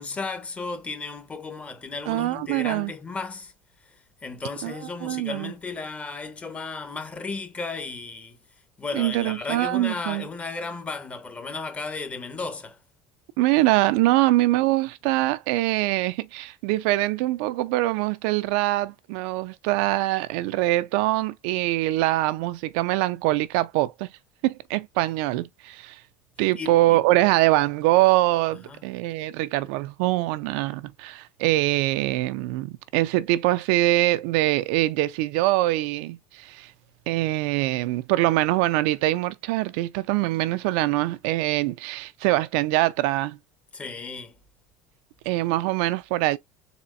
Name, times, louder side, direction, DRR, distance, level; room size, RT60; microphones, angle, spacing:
voice 1, 0.0-3.5 3.9-8.4 8.8-12.8 26.6-27.0 28.7-28.8 43.7-44.4, left 4 dB, 25° left, 1.0 m, -34 dB
voice 2, 2.1-2.9 4.6-4.7 5.0-5.5 8.9-10.3 13.4-24.1 24.4-26.0 26.4-36.7 37.1-43.4 45.3-46.4, right 17 dB, 75° right, 0.4 m, -23 dB
4.3 x 3.0 x 2.3 m
supercardioid pair, 95°, 5 cm